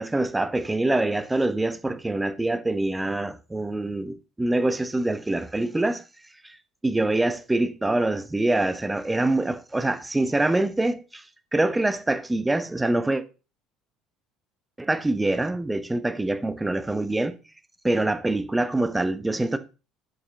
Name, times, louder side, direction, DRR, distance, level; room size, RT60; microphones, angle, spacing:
voice 1, 0.0-6.0 6.4-6.5 6.8-11.2 11.5-13.2 14.8-17.4 17.8-19.6, right 2 dB, 10° right, 1.0 m, -25 dB
6.9 x 5.9 x 5.2 m
hypercardioid pair, 65°, 0 cm